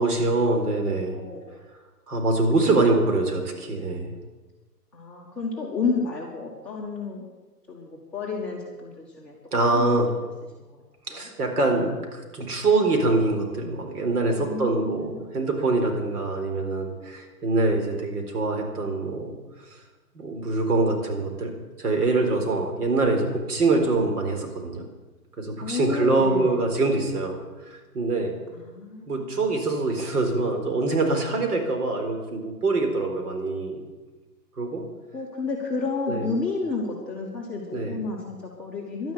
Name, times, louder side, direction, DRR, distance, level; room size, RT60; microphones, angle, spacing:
voice 1, 0.0-1.2 2.1-4.1 9.5-10.1 11.1-19.4 20.1-21.5 21.8-24.8 25.4-28.4 29.1-33.8 34.6-34.8 36.1-36.3 37.7-38.0, right 3 dB, 70° right, 3 dB, 4.2 m, -24 dB
voice 2, 1.1-1.4 2.6-3.3 4.9-7.2 7.7-9.3 9.7-10.0 10.7-10.8 11.1-11.3 14.4-15.2 25.6-26.6 28.5-29.3 35.1-39.1, left 4 dB, ahead, -9 dB, 1.6 m, -31 dB
12.0 x 11.0 x 8.5 m, 1.2 s
hypercardioid pair, 165°, 48 cm